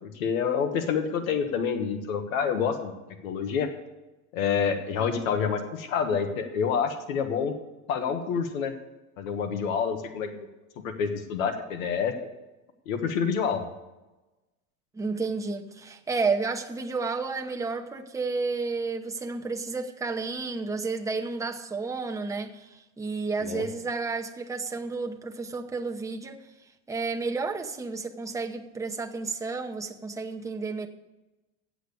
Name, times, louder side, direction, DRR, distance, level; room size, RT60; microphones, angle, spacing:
voice 1, 0.0-3.0 3.2-3.7 4.3-7.5 7.9-8.7 9.2-10.5 10.8-12.1 12.9-13.6 23.4-23.6, left 6 dB, 85° left, 7 dB, 1.4 m, -28 dB
voice 2, 14.9-26.4 26.9-30.9, right 4 dB, 10° right, 2 dB, 0.8 m, -31 dB
8.5 x 7.8 x 8.1 m, 1.1 s
supercardioid pair, 130°, 40 cm